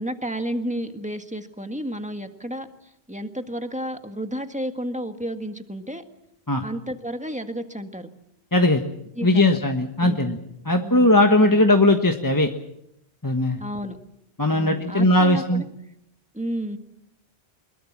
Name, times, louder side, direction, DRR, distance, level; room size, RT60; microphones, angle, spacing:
voice 1, 0.0-6.0 6.6-8.1 9.2-9.6 10.0-10.4 10.8-11.6 13.6-14.0 14.5-15.6 16.3-16.8, equal, 5° right, 7 dB, 1.7 m, -32 dB
voice 2, 8.5-8.8 9.2-10.4 10.6-12.5 13.2-13.6 14.4-15.6, left 1 dB, 20° left, 4 dB, 1.4 m, -19 dB
24.5 x 22.0 x 7.4 m, 0.76 s
omnidirectional pair, 1.1 m